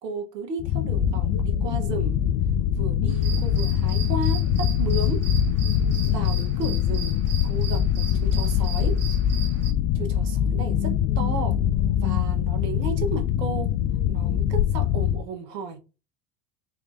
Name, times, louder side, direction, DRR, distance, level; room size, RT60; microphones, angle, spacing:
voice 1, 0.0-2.2 2.8-5.2 6.1-7.2 7.4-9.0 9.9-11.6 11.9-13.7 14.1-15.8, right 3 dB, 80° right, 1.1 m, -34 dB
sound 1, 0.6-15.2, left 9 dB, 45° left, 0.4 m, -23 dB
sound 2, 3.1-9.7, right 7 dB, 30° right, 1.5 m, -39 dB
3.5 x 3.1 x 2.5 m
hypercardioid pair, 80°, 48 cm